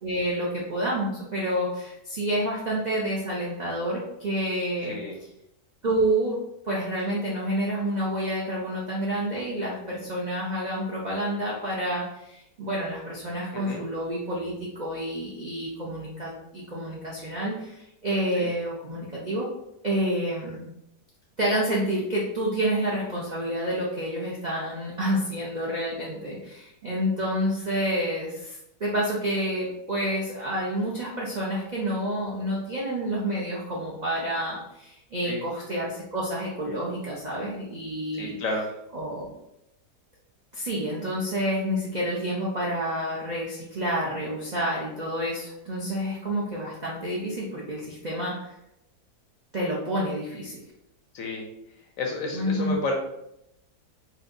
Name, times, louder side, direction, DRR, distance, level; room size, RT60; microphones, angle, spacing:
voice 1, 0.0-5.0 5.8-6.4 6.6-19.5 19.8-20.7 21.4-38.4 38.9-39.3 40.5-48.5 49.5-50.6 52.3-52.8, right 1 dB, 60° right, -6 dB, 0.4 m, -29 dB
voice 2, 38.2-38.6 51.1-51.5 52.0-52.9, left 2 dB, 65° left, 1 dB, 0.9 m, -31 dB
4.3 x 2.3 x 2.5 m, 0.81 s
omnidirectional pair, 1.7 m